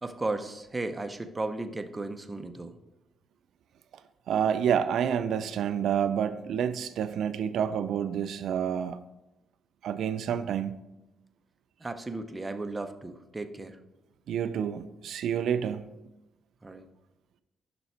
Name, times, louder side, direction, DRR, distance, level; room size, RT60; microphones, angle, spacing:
voice 1, 0.0-2.8 11.8-13.8 16.6-16.9, right 2 dB, 15° right, 8 dB, 0.5 m, -35 dB
voice 2, 4.3-9.0 9.8-10.8 14.3-15.9, right 8 dB, 75° right, 12 dB, 0.3 m, -28 dB
6.8 x 5.7 x 4.4 m, 0.96 s
cardioid pair, 125°, 0 cm